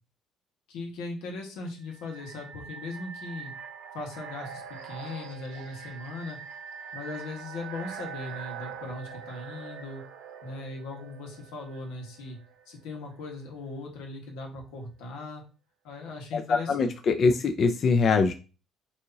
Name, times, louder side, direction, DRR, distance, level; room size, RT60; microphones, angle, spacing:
voice 1, 0.7-3.5 3.9-6.4 6.9-10.0 10.4-12.4 12.6-15.4 15.8-16.9, left 3 dB, 85° left, 1 dB, 1.5 m, -39 dB
sound 1, 1.8-12.6, right 7 dB, 90° right, 0.9 m, -43 dB
voice 2, 16.3-18.3, left 4 dB, 35° left, 7 dB, 0.4 m, -23 dB
6.3 x 2.8 x 2.7 m, 0.34 s
cardioid pair, 160°, 0 cm